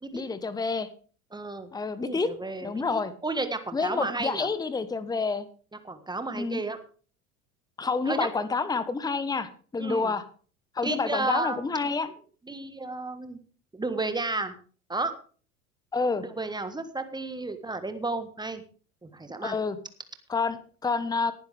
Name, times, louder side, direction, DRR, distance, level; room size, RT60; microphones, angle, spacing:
voice 1, 0.1-0.9 1.7-2.3 2.6-3.1 3.7-5.5 6.3-6.6 7.8-10.2 10.7-12.1 15.9-16.2 19.4-19.8 20.3-21.3, left 4 dB, 10° left, 15 dB, 1.1 m, -28 dB
voice 2, 1.3-1.7 2.0-4.5 5.8-6.8 8.1-8.3 9.8-10.1 10.8-11.7 12.5-13.4 13.7-14.5 14.9-15.1 16.4-18.6 19.0-19.6, right 3 dB, 10° right, 9 dB, 1.5 m, -32 dB
18.5 x 10.5 x 3.5 m, 0.40 s
figure-of-eight pair, 75°, 45 cm